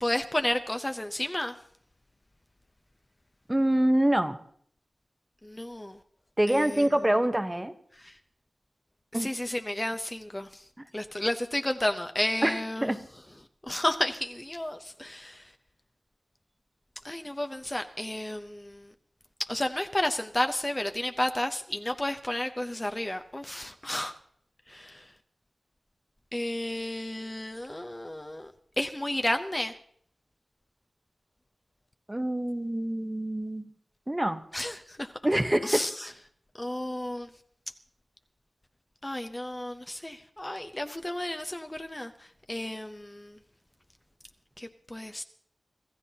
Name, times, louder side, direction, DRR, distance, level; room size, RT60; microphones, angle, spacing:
voice 1, 0.0-1.5 5.4-5.9 6.5-6.6 9.2-10.5 10.9-12.9 13.7-15.3 17.0-18.7 19.5-24.1 24.7-24.9 26.3-28.5 28.8-29.7 34.5-34.7 35.6-35.9 36.6-37.3 39.0-42.1 42.5-43.3 44.6-45.2, left 1 dB, 20° left, 6 dB, 0.6 m, -31 dB
voice 2, 3.5-4.4 6.4-7.7 9.1-9.3 12.4-13.0 32.1-33.7 34.1-34.4 35.2-35.8, right 1 dB, 15° right, 9 dB, 0.9 m, -26 dB
25.5 x 15.0 x 2.8 m, 0.64 s
wide cardioid pair, 100°, 0 cm